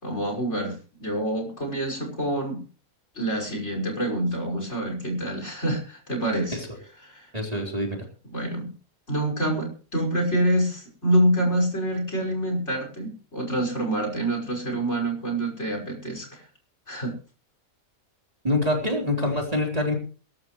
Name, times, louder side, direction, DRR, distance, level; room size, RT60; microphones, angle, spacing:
voice 1, 0.0-2.6 3.2-6.6 7.0-7.3 8.3-8.7 9.1-16.4 16.9-17.1, right 1 dB, 50° left, 2 dB, 6.1 m, -26 dB
voice 2, 7.3-8.0 18.4-19.9, left 1 dB, 25° right, 0 dB, 4.1 m, -25 dB
22.5 x 13.0 x 3.2 m, 0.39 s
omnidirectional pair, 1.5 m